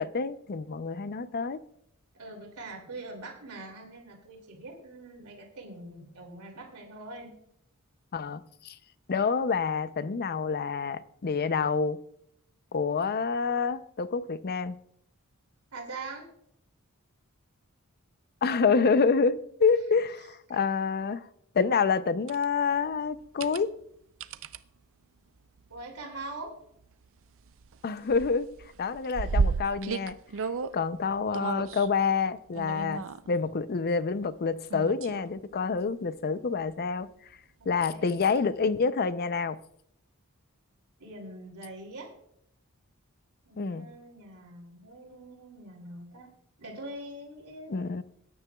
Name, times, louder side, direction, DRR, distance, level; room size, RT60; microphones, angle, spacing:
voice 1, 0.0-1.6 8.1-8.8 9.1-12.0 12.7-14.8 18.4-21.3 21.5-23.7 27.8-28.5 28.8-30.2 30.7-37.1 37.7-39.6 43.6-43.9 47.7-48.0, left 5 dB, 45° left, 0.5 m, -27 dB
voice 2, 2.1-7.3 15.7-16.3 20.7-20.8 25.7-26.5 37.6-38.1 41.0-42.1 43.4-46.3 46.6-48.0, right 2 dB, 80° right, 2.8 m, -43 dB
sound 1, 22.3-22.4 23.2-23.6 24.2-24.6 25.8-26.0 26.5-26.6 26.8-27.8 28.1-30.8 31.3-31.9 32.5-33.4 34.7-35.2 35.7-35.8 38.2-38.3, right 4 dB, 60° right, 0.5 m, -32 dB
19.0 x 9.9 x 2.3 m
head